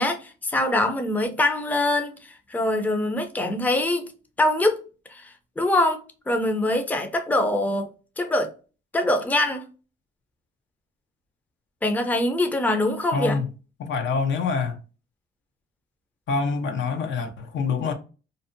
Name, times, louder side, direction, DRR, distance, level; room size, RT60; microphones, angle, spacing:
voice 1, 0.0-2.2 2.5-4.1 4.4-4.8 5.1-7.9 8.2-8.5 8.9-9.6 11.8-13.4, left 1 dB, 10° left, 0.4 m, -23 dB
voice 2, 13.1-13.5 13.8-14.8 16.3-17.9, left 4 dB, 65° left, 0.6 m, -26 dB
2.6 x 2.0 x 2.5 m
cardioid pair, 90°, 20 cm